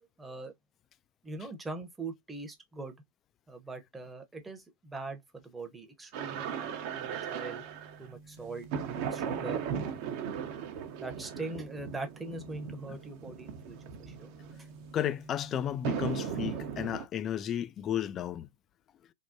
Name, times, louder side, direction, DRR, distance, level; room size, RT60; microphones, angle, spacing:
voice 1, 0.2-0.5 1.2-3.0 3.5-7.6 8.0-9.6 11.0-14.3, right 3 dB, 10° right, 0.8 m, -42 dB
sound 1, 6.1-17.1, right 7 dB, 50° right, 0.7 m, -38 dB
voice 2, 14.9-18.5, left 10 dB, 30° left, 0.3 m, -33 dB
3.5 x 2.2 x 2.6 m
figure-of-eight pair, 100°, 0 cm